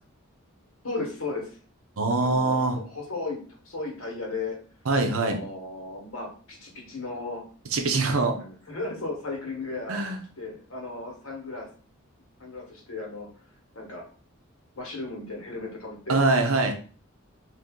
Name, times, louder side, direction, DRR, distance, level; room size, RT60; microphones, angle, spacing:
voice 1, 0.8-1.6 2.2-2.6 2.8-3.4 3.6-4.6 5.1-7.4 8.3-10.0 10.4-11.7 12.4-13.3 13.7-14.0 14.8-16.2, left 3 dB, 90° left, -1 dB, 1.3 m, -35 dB
voice 2, 2.0-2.8 4.9-5.4 7.7-8.4 9.9-10.2 16.1-16.7, right 3 dB, 80° right, 4 dB, 0.7 m, -23 dB
2.7 x 2.7 x 3.6 m, 0.40 s
head